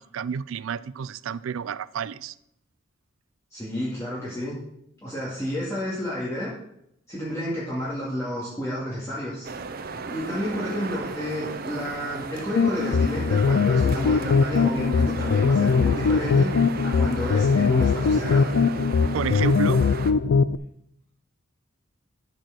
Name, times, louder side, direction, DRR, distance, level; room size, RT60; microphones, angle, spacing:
voice 1, 0.0-2.4 19.1-19.8, right 7 dB, 90° right, 18 dB, 0.4 m, -30 dB
voice 2, 3.5-4.6 5.0-6.5 7.1-9.5 10.1-16.5 16.8-18.5, equal, 15° left, -8 dB, 2.2 m, -30 dB
sound 1, 9.4-20.1, right 4 dB, 50° right, 0.6 m, -35 dB
sound 2, 12.6-20.6, left 5 dB, 80° left, 0.4 m, -21 dB
13.5 x 4.6 x 6.2 m, 0.76 s
head